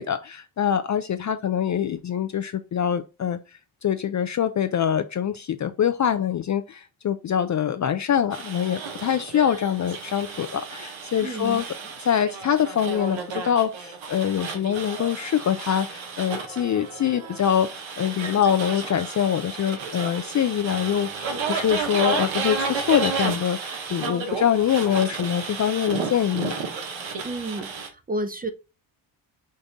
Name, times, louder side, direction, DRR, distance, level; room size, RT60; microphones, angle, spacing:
voice 1, 0.0-3.4 3.8-11.6 12.0-26.5, left 9 dB, 40° left, 0.4 m, -24 dB
sound 1, 8.3-27.9, right 5 dB, 65° right, 1.2 m, -32 dB
voice 2, 11.2-11.6 27.2-27.7 28.1-28.5, right 1 dB, 20° right, 0.7 m, -30 dB
5.3 x 2.6 x 3.4 m
supercardioid pair, 60°, 50 cm